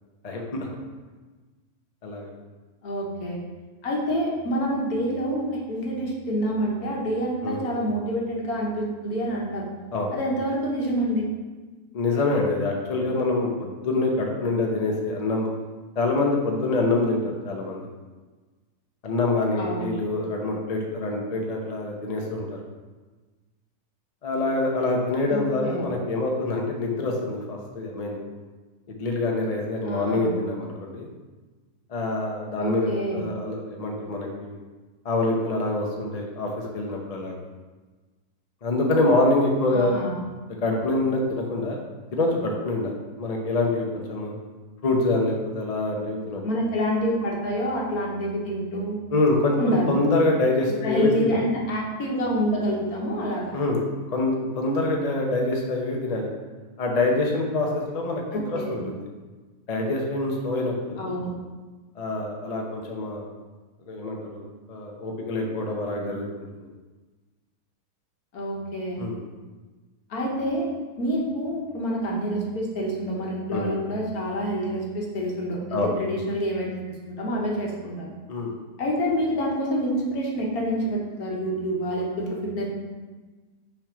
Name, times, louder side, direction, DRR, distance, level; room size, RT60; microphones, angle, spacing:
voice 1, 0.2-0.7 2.0-2.3 7.4-7.6 9.9-10.1 11.9-15.5 16.0-17.9 19.0-22.6 24.2-28.2 28.9-31.1 31.9-34.6 35.0-37.4 38.6-39.9 40.6-41.8 42.1-44.3 44.8-46.4 49.1-51.4 53.5-53.8 54.1-56.3 56.8-59.0 59.7-61.1 62.0-63.3 63.9-66.5 69.0-69.2 73.5-73.9 75.7-75.9 78.3-78.5, left 2 dB, 40° left, 0 dB, 0.6 m, -25 dB
voice 2, 2.8-3.4 3.8-9.7 10.1-11.2 19.6-19.9 25.3-25.8 29.8-30.3 32.6-33.2 39.7-40.2 46.4-49.0 49.6-49.9 50.8-53.5 58.3-58.8 61.0-61.3 68.3-69.0 70.1-70.7 71.0-78.1 78.8-82.7, equal, 65° left, -2 dB, 1.5 m, -27 dB
5.9 x 3.5 x 4.9 m, 1.3 s
omnidirectional pair, 1.7 m